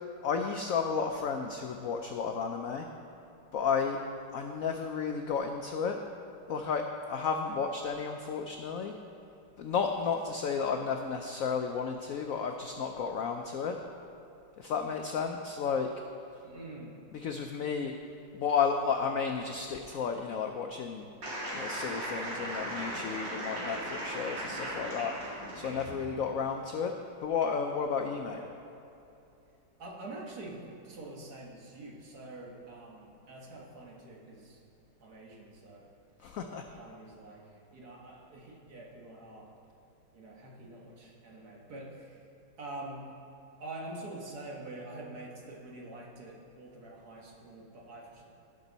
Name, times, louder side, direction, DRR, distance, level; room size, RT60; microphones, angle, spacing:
voice 1, 0.2-2.9 3.5-4.0 4.3-6.0 6.5-8.9 9.6-13.8 14.6-15.9 17.1-18.0 18.3-21.0 21.5-25.1 25.5-26.9 27.2-28.4 36.2-36.6, left 6 dB, 75° left, 4 dB, 0.7 m, -32 dB
voice 2, 16.4-16.9 28.3-28.5 29.8-34.6 35.0-35.9 36.8-39.5 40.1-42.2 42.6-43.1 43.6-48.2, right 2 dB, 55° right, -2 dB, 1.9 m, -46 dB
sound 1, 21.2-25.9, right 1 dB, 75° right, 3.2 m, -37 dB
17.0 x 6.2 x 4.0 m, 2.8 s
omnidirectional pair, 2.0 m